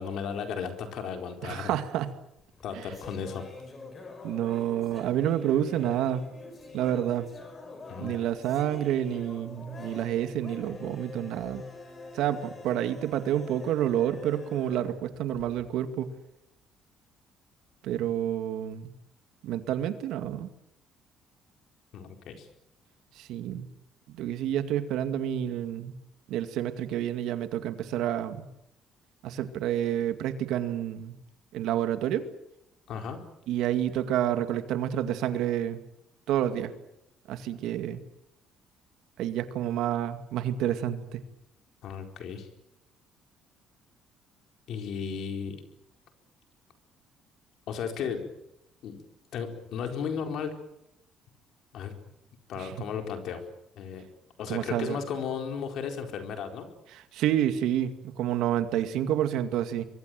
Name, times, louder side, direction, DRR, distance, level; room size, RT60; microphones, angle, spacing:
voice 1, 0.0-1.7 2.6-3.4 7.9-8.1 21.9-22.5 32.9-33.2 41.8-42.5 44.7-45.6 47.7-48.3 48.8-49.0 49.3-50.6 51.7-51.9 52.5-53.4 53.8-54.0 54.4-56.7, left 7 dB, 60° left, 5 dB, 4.3 m, -35 dB
voice 2, 1.4-2.1 2.7-2.9 4.2-6.2 6.7-7.3 8.0-11.6 12.1-16.1 17.8-18.9 19.4-20.5 23.2-23.7 24.1-25.9 26.3-28.5 29.2-31.1 31.5-32.3 33.5-35.8 36.3-36.7 37.3-38.0 39.2-41.2 52.6-52.9 54.5-55.0 56.9-59.9, right 11 dB, 80° right, 9 dB, 2.2 m, -29 dB
sound 1, 2.4-15.8, left 3 dB, 25° left, 4.8 m, -46 dB
25.0 x 23.0 x 7.8 m, 0.80 s
cardioid pair, 160°, 0 cm